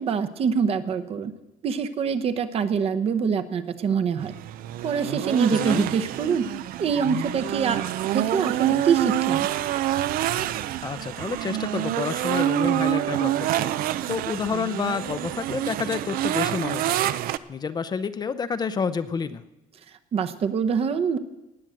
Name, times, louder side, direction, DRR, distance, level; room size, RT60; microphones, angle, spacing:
voice 1, 0.0-1.3 1.6-4.3 4.8-6.5 6.8-7.9 8.1-9.5 20.1-21.2, right 6 dB, 40° right, 9 dB, 0.8 m, -24 dB
sound 1, 4.2-17.4, right 13 dB, 80° right, 0.5 m, -27 dB
voice 2, 5.5-5.9 10.8-13.7 14.1-17.1 17.5-19.4, left 6 dB, 30° left, 12 dB, 0.5 m, -29 dB
18.5 x 7.8 x 7.5 m, 1.0 s
cardioid pair, 165°, 15 cm